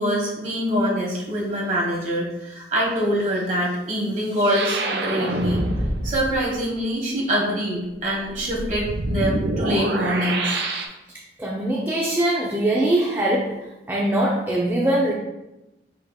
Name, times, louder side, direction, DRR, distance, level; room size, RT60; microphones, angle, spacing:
voice 1, 0.0-5.7 6.0-10.6, equal, 45° right, -3 dB, 1.3 m, -24 dB
sound 1, 4.4-6.6 8.3-10.9, right 2 dB, 65° right, 0.6 m, -26 dB
voice 2, 11.4-13.6 13.9-15.1, right 1 dB, 10° right, -4 dB, 0.4 m, -22 dB
5.2 x 4.3 x 2.2 m, 0.97 s
head